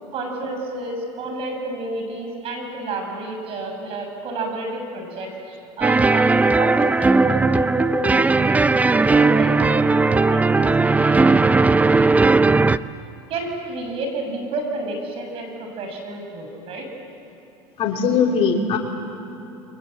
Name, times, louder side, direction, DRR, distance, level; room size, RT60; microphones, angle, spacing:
voice 1, 0.1-6.3 6.6-12.1 13.3-16.9, right 2 dB, 50° right, 3 dB, 7.2 m, -30 dB
sound 1, 5.8-12.8, right 3 dB, 10° right, 0.6 m, -17 dB
voice 2, 17.8-18.8, left 5 dB, 50° left, 3 dB, 3.1 m, -20 dB
29.5 x 24.0 x 8.0 m, 2.9 s
supercardioid pair, 110°, 12 cm